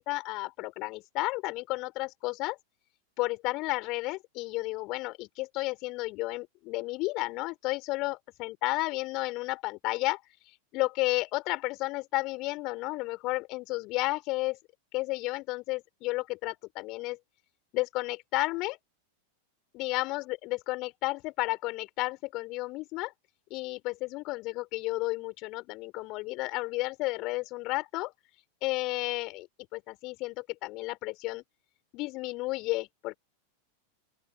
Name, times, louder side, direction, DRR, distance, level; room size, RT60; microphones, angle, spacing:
voice 1, 0.0-2.6 3.2-14.6 14.9-17.2 17.7-18.8 19.7-23.1 23.5-28.1 28.6-29.5 29.7-31.4 31.9-33.2, left 22 dB, 40° left, 5.6 m, -32 dB
open air
figure-of-eight pair, 90°, 0 cm